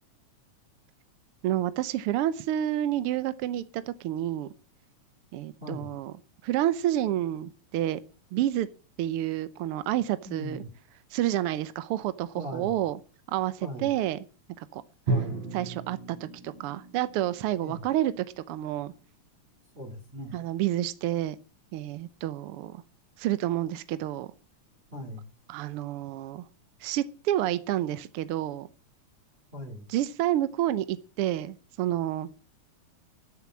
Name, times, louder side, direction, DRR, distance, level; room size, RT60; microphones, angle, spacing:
voice 1, 1.4-4.5 5.3-6.1 6.4-8.0 8.3-8.7 9.0-10.6 11.1-13.0 13.3-14.2 14.6-14.8 15.5-16.2 16.4-18.9 20.3-21.4 21.7-22.8 23.2-24.3 25.5-26.4 26.8-28.7 29.9-32.3, right 13 dB, 80° right, 15 dB, 1.3 m, -29 dB
voice 2, 5.6-6.0 10.2-10.7 12.3-12.8 13.6-13.9 15.1-15.5 17.6-17.8 19.7-20.4 24.9-25.3 29.5-29.9, equal, 20° right, 1 dB, 2.5 m, -39 dB
Drum, 15.1-19.1, right 3 dB, 55° right, 6.4 m, -35 dB
13.0 x 7.2 x 7.4 m, 0.36 s
omnidirectional pair, 3.4 m